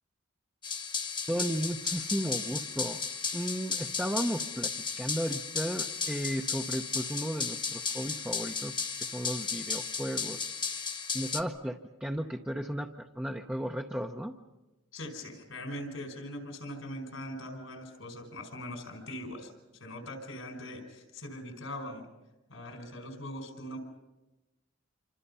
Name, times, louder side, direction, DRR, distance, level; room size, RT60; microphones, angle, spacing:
sound 1, 0.6-11.4, left 5 dB, 25° left, 0.9 m, -34 dB
voice 1, 1.3-3.0 3.3-4.7 5.0-8.7 9.0-10.5 11.1-14.3, equal, 5° right, 1 dB, 0.8 m, -34 dB
voice 2, 14.9-22.0 22.5-23.8, left 1 dB, 85° left, 4 dB, 5.1 m, -41 dB
27.5 x 25.5 x 5.6 m, 1.1 s
head